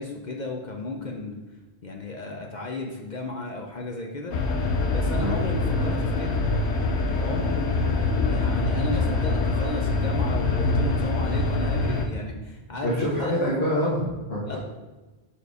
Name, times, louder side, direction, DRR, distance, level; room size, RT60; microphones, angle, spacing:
voice 1, 0.0-1.4 1.8-4.3 4.9-6.3 7.1-7.6 8.3-13.3 14.5-14.6, left 2 dB, 50° left, 1 dB, 0.7 m, -34 dB
sound 1, 4.3-12.1, left 3 dB, 85° left, 1.0 m, -24 dB
voice 2, 12.8-14.6, equal, 70° left, -6 dB, 1.4 m, -26 dB
5.2 x 4.6 x 4.7 m, 1.2 s
omnidirectional pair, 1.1 m